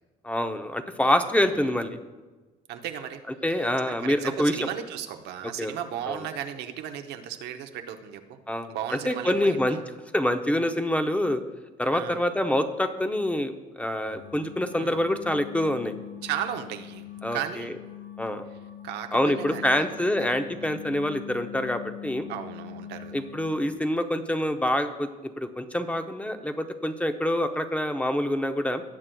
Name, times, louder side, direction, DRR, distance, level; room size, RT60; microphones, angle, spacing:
voice 1, 0.2-2.0 3.4-4.7 5.6-5.7 6.1-6.2 8.5-9.8 10.1-11.4 11.8-15.9 17.2-17.7 18.2-18.4 19.1-22.3 23.1-25.1 25.4-28.8, left 1 dB, 10° left, 7 dB, 0.6 m, -26 dB
voice 2, 2.7-3.2 3.9-8.4 8.7-9.8 11.9-12.2 14.8-15.0 16.2-17.0 17.3-17.7 18.8-20.7 22.3-23.1, right 10 dB, 80° right, 6 dB, 0.8 m, -35 dB
sound 1, 14.1-23.8, left 11 dB, 80° left, 0.8 m, -43 dB
17.5 x 7.4 x 2.3 m, 1.2 s
cardioid pair, 110°, 17 cm